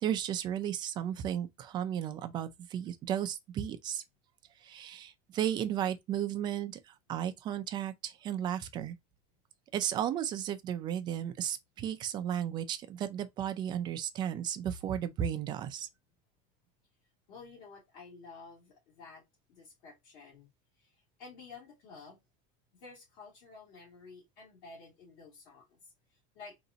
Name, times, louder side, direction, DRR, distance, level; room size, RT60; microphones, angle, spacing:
voice 1, 0.0-4.0 4.6-9.0 9.7-15.9, right 10 dB, 25° right, 0.4 m, -34 dB
voice 2, 17.3-19.2 19.5-20.5 20.8-22.2 22.7-25.8 26.1-26.6, left 4 dB, 50° left, 2.4 m, -52 dB
3.9 x 2.6 x 3.9 m
cardioid pair, 175°, 19 cm